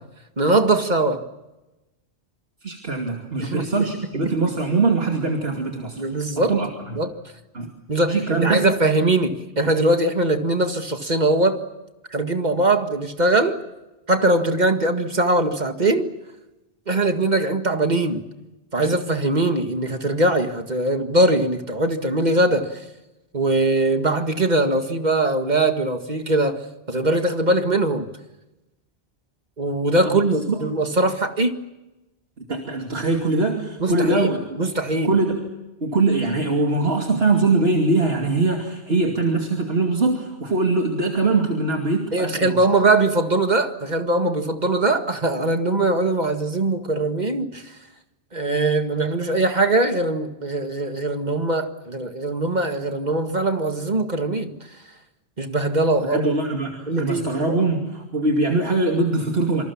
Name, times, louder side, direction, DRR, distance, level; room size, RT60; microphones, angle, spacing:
voice 1, 0.4-1.2 3.4-3.8 6.0-6.6 7.0-7.1 7.9-11.6 12.1-13.6 14.1-16.1 16.9-18.3 18.7-22.8 23.3-28.1 29.6-31.6 33.8-35.1 42.1-47.7 48.3-54.5 55.4-56.3 56.9-57.6, right 2 dB, 40° right, 6 dB, 2.0 m, -21 dB
voice 2, 2.6-6.0 6.4-7.0 7.5-7.7 8.1-8.7 30.0-30.2 30.5-30.7 32.5-34.4 35.0-35.5 35.8-42.6 56.0-59.6, right 3 dB, 65° right, 1 dB, 2.9 m, -22 dB
27.0 x 26.0 x 7.2 m, 1.0 s
omnidirectional pair, 1.1 m